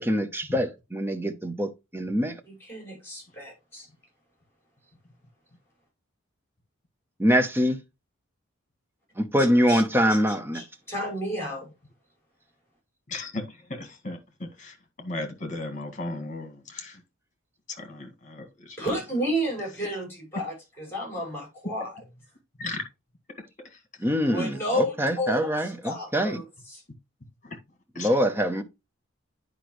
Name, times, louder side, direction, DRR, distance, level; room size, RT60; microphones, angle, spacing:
voice 1, 0.0-2.4 7.2-7.8 9.2-10.6 24.0-26.4 28.0-28.6, equal, 10° right, 0.8 m, -24 dB
voice 2, 2.5-3.9 9.7-9.8 10.5-11.7 18.8-21.9 24.3-26.8, equal, 10° left, 5.1 m, -31 dB
voice 3, 13.1-17.0 17.7-18.8 22.6-22.8 23.6-23.8 27.4-27.6 28.0-28.1, left 2 dB, 40° left, 1.8 m, -36 dB
9.8 x 5.1 x 3.1 m
head